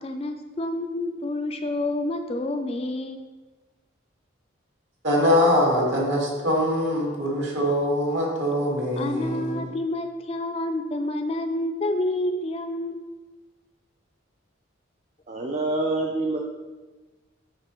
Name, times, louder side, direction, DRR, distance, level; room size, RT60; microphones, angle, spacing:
voice 1, 0.0-3.2 9.0-13.0, left 1 dB, 30° left, 6 dB, 0.3 m, -28 dB
voice 2, 5.0-9.6, left 1 dB, 65° right, -2 dB, 1.8 m, -23 dB
voice 3, 15.3-16.4, right 2 dB, 35° right, 0 dB, 0.4 m, -26 dB
9.9 x 4.1 x 3.0 m, 1.2 s
head